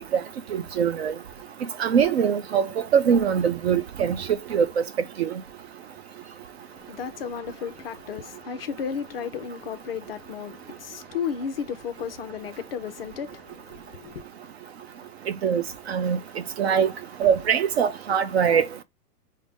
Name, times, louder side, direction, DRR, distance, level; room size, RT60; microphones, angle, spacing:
voice 1, 0.5-1.1 1.8-2.7 2.9-4.2 4.5-4.7 5.2-5.3 15.4-16.2 16.6-16.9 17.2-18.7, right 7 dB, 45° right, 0.4 m, -22 dB
voice 2, 6.7-14.2, left 7 dB, 40° left, 0.4 m, -34 dB
5.1 x 2.1 x 3.4 m
hypercardioid pair, 130°, 48 cm